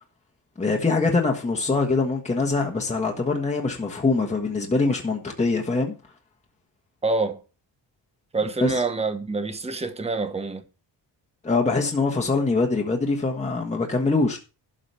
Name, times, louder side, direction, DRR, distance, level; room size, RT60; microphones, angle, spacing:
voice 1, 0.6-5.9 8.6-8.7 11.4-14.4, left 3 dB, 15° left, 1.4 m, -23 dB
voice 2, 7.0-7.4 8.3-10.6, right 3 dB, 15° right, 1.0 m, -26 dB
12.0 x 5.1 x 6.8 m
wide cardioid pair, 165°, 44 cm